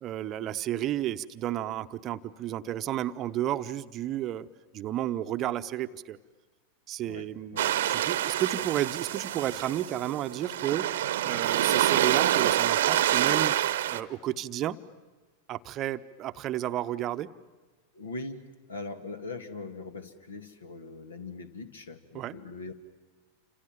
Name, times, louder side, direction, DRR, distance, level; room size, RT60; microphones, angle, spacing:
voice 1, 0.0-4.5 4.7-6.2 6.9-7.6 7.9-10.9 11.2-13.5 13.9-14.8 15.5-17.3 22.1-22.4, right 12 dB, 35° right, 11 dB, 0.9 m, -32 dB
voice 2, 7.0-7.8 17.9-18.4 18.7-22.7, left 3 dB, 70° left, 10 dB, 2.2 m, -41 dB
sound 1, 7.6-14.0, right 12 dB, 55° right, 1.0 m, -26 dB
29.5 x 27.0 x 7.4 m, 1.3 s
figure-of-eight pair, 90°, 0 cm